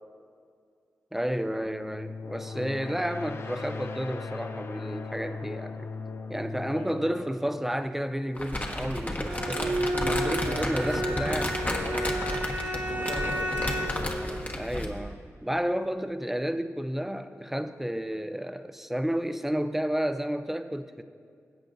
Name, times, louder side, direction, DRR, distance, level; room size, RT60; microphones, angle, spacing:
voice 1, 1.1-5.9 6.3-11.6 14.6-21.0, equal, 5° right, 10 dB, 0.5 m, -31 dB
sound 1, 1.6-8.3, left 4 dB, 50° left, 0.6 m, -39 dB
voice 2, 6.7-7.3 10.4-11.1 11.4-12.1 12.7-14.3, left 2 dB, 75° left, -2 dB, 1.6 m, -40 dB
Crumpling crinkling, 8.4-15.0, left 1 dB, 30° left, 1.3 m, -32 dB
Bowed string instrument, 9.2-14.1, right 1 dB, 40° right, 1.5 m, -31 dB
17.0 x 7.9 x 2.6 m, 2.3 s
cardioid pair, 55°, 6 cm